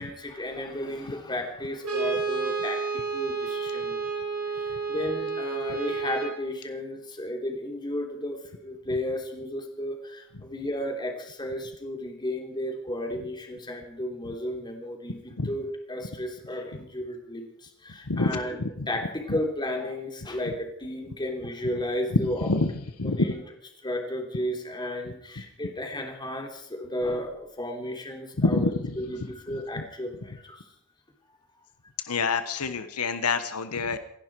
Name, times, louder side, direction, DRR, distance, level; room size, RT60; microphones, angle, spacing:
voice 1, 0.0-2.8 3.1-4.0 4.5-18.6 18.9-22.5 23.0-23.4 23.8-30.6, left 1 dB, 20° left, 2 dB, 3.1 m, -33 dB
Brass instrument, 1.8-6.4, right 4 dB, 85° right, 4.2 m, -30 dB
voice 2, 18.1-18.4 18.8-18.9 22.5-22.7 23.0-23.3 28.4-28.7 32.1-34.0, left 3 dB, 85° left, 10 dB, 1.1 m, -26 dB
27.5 x 11.0 x 4.7 m, 0.74 s
head